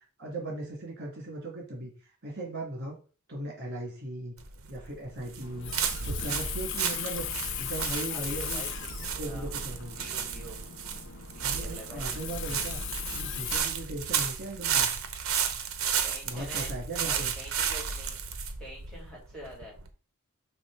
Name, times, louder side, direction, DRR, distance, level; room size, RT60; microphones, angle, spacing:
voice 1, 0.2-1.9 2.2-2.9 3.3-4.3 4.7-5.7 6.0-8.6 9.2-10.0 11.4-12.8 13.1-14.9 16.3-17.3, right 1 dB, 50° right, -1 dB, 2.7 m, -38 dB
sound 1, 4.4-19.9, right 7 dB, 70° right, 0.9 m, -33 dB
Water tap faucet, 5.4-13.6, left 9 dB, 60° left, 0.6 m, -38 dB
voice 2, 8.1-8.7 9.0-9.5 9.9-10.7 11.3-12.2 16.0-16.7 17.0-18.2 18.6-19.8, equal, 5° left, -5 dB, 2.9 m, -46 dB
6.8 x 3.2 x 4.8 m, 0.35 s
head